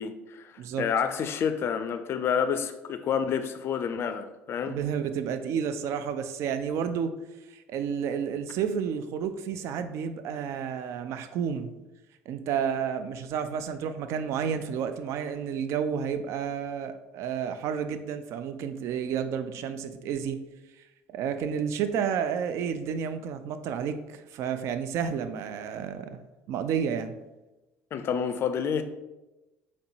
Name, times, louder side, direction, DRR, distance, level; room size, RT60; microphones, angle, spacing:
voice 1, 0.0-4.8 27.9-28.8, left 7 dB, 45° left, 10 dB, 0.4 m, -29 dB
voice 2, 4.6-7.1 7.5-11.7 12.3-20.4 21.1-26.2 26.5-27.1, right 7 dB, 55° right, 9 dB, 0.3 m, -31 dB
4.2 x 3.0 x 2.8 m, 1.0 s
hypercardioid pair, 55°, 6 cm